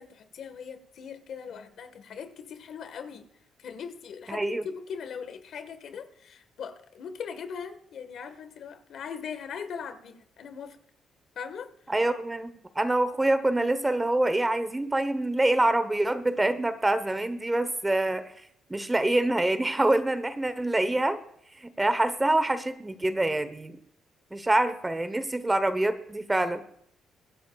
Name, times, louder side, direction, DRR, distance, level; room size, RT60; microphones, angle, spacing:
voice 1, 0.0-3.3 3.6-10.8 11.3-11.7, left 6 dB, 65° left, 1.6 m, -40 dB
voice 2, 4.3-4.6 11.9-18.3 18.7-21.2 21.6-23.8 24.3-26.6, right 2 dB, 15° right, 1.1 m, -26 dB
24.5 x 10.5 x 2.4 m
cardioid pair, 90°, 0 cm